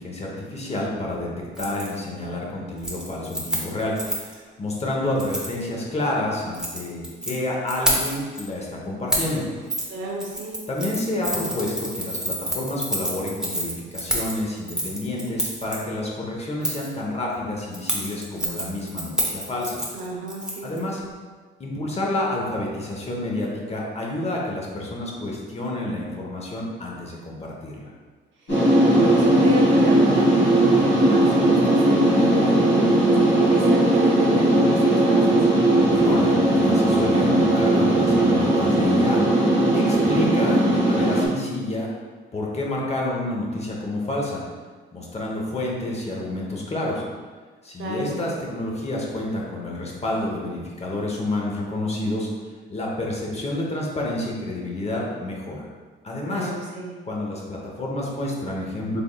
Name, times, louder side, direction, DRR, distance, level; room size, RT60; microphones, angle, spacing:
voice 1, 0.0-1.3 1.6-9.7 10.7-19.8 20.6-21.0 21.6-27.9 35.9-39.2 39.7-41.9 42.3-44.4 44.9-47.0 47.6-52.3 52.7-55.7 56.0-56.5 57.1-59.0, left 1 dB, 30° left, -2 dB, 0.8 m, -29 dB
Keys jangling, 1.5-1.9 2.2-2.5 2.8-4.3 5.2-5.5 6.4-7.3 7.7-8.4 9.1-9.4 9.7-9.9 10.2-15.8 16.6-16.9 17.7-20.8 21.1-21.2, right 1 dB, 5° right, 0.7 m, -28 dB
voice 2, 9.9-10.6 19.9-20.7 28.9-35.4 47.8-48.2 56.3-56.9, right 2 dB, 75° right, -1 dB, 0.8 m, -31 dB
sound 1, 28.5-41.3, right 1 dB, 85° left, 1.3 m, -18 dB
3.5 x 3.5 x 2.3 m, 1.5 s
cardioid pair, 90°, 20 cm